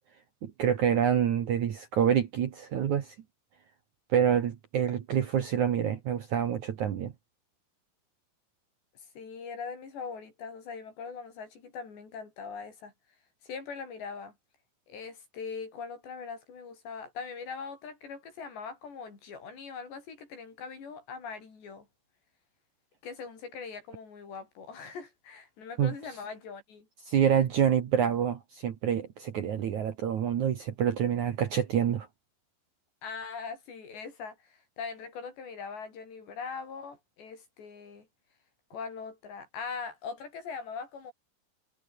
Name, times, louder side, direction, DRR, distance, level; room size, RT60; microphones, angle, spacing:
voice 1, 0.4-3.1 4.1-7.1 25.8-25.9 27.1-32.1, right 9 dB, 55° right, 2.3 m, -27 dB
voice 2, 9.2-12.9 13.4-14.3 14.9-21.9 23.0-26.9 33.0-38.1 38.7-41.1, left 5 dB, 70° left, 8.2 m, -41 dB
omnidirectional pair, 5.2 m